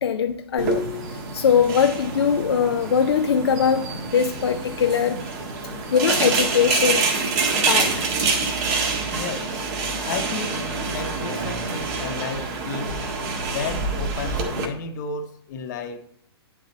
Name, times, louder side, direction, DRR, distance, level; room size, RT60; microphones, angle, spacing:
voice 1, 0.0-5.2 5.9-7.1 7.7-8.0, left 7 dB, 70° left, 0.5 m, -21 dB
sound 1, 0.6-14.7, right 4 dB, 40° right, 1.6 m, -26 dB
voice 2, 9.1-9.7 10.0-10.6 10.9-12.9 13.4-16.0, left 5 dB, 45° left, 1.0 m, -33 dB
10.5 x 3.8 x 4.0 m
figure-of-eight pair, 120°, 14 cm